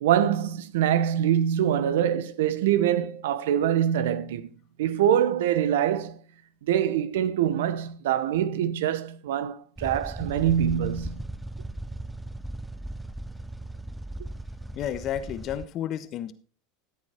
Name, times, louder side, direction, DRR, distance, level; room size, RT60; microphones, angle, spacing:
voice 1, 0.0-4.5 4.8-6.2 6.6-11.2, right 10 dB, 75° right, 0.9 m, -24 dB
sound 1, 9.8-15.6, right 1 dB, 5° right, 0.6 m, -37 dB
voice 2, 14.7-16.3, left 10 dB, 45° left, 1.3 m, -31 dB
14.0 x 8.5 x 4.5 m
hypercardioid pair, 100°, 0 cm